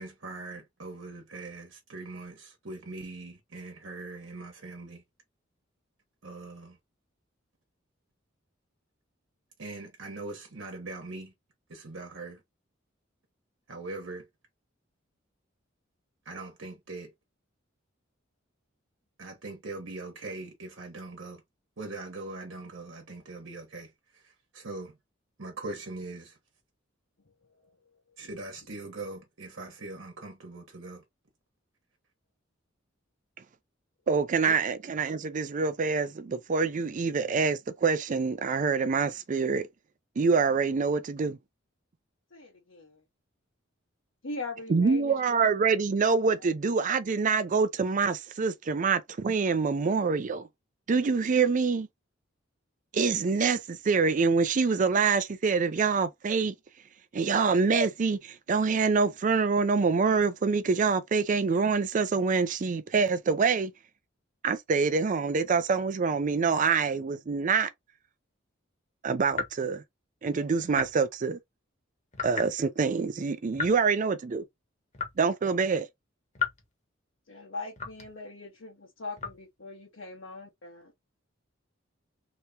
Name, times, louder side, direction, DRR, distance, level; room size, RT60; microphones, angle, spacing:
voice 1, 0.0-5.0 6.2-6.8 9.6-11.3 11.7-12.4 13.7-14.3 16.2-17.1 19.2-21.4 21.8-25.0 25.4-26.4 28.2-31.0, right 2 dB, 70° right, 1.1 m, -41 dB
voice 2, 34.1-39.7 40.2-41.4 44.7-50.5 50.9-51.9 52.9-56.5 57.1-63.7 64.4-67.7 69.0-69.8 70.2-71.4 72.2-74.4 75.2-75.9, right 5 dB, 40° right, 0.4 m, -26 dB
voice 3, 42.3-43.0 44.2-45.2 46.4-46.5 77.3-81.1, left 3 dB, 70° left, 1.0 m, -41 dB
sound 1, 69.3-69.5 70.7-71.1 72.1-72.5 73.5-73.8 74.9-75.3 76.3-76.6 77.8-78.1 79.2-79.4, left 5 dB, 35° left, 1.1 m, -34 dB
3.4 x 3.0 x 2.7 m
head